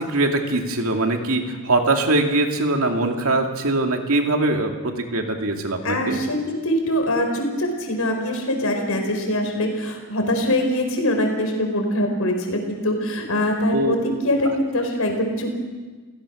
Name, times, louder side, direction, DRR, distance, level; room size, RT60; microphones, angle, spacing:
voice 1, 0.0-6.2 13.7-13.9, right 2 dB, 75° right, 3 dB, 2.6 m, -22 dB
voice 2, 5.8-14.0 14.2-15.6, left 1 dB, 75° left, 4 dB, 5.0 m, -23 dB
29.0 x 17.0 x 6.5 m, 1.3 s
head